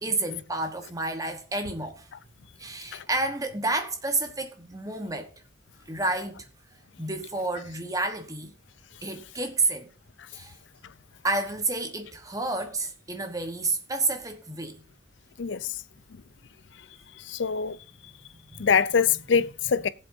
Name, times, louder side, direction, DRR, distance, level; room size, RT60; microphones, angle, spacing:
voice 1, 0.0-2.1 2.6-5.3 5.9-6.5 7.0-8.5 9.0-9.9 10.3-10.6 11.2-14.8 18.5-18.7, right 2 dB, 15° right, 1.2 m, -30 dB
voice 2, 15.4-15.7 17.2-17.8 18.6-19.9, left 6 dB, 65° left, 0.5 m, -24 dB
19.0 x 7.8 x 2.7 m
head